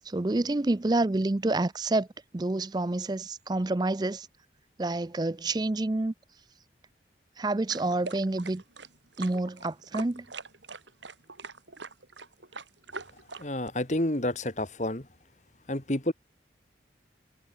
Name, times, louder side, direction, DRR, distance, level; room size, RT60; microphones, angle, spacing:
voice 1, 0.1-2.1 2.3-4.3 4.8-6.1 7.4-8.6 9.2-10.3, right 2 dB, 20° right, 0.4 m, -28 dB
sound 1, 7.7-13.7, right 4 dB, 90° right, 7.6 m, -43 dB
voice 2, 13.4-15.1 15.7-16.1, left 1 dB, 40° left, 2.0 m, -29 dB
head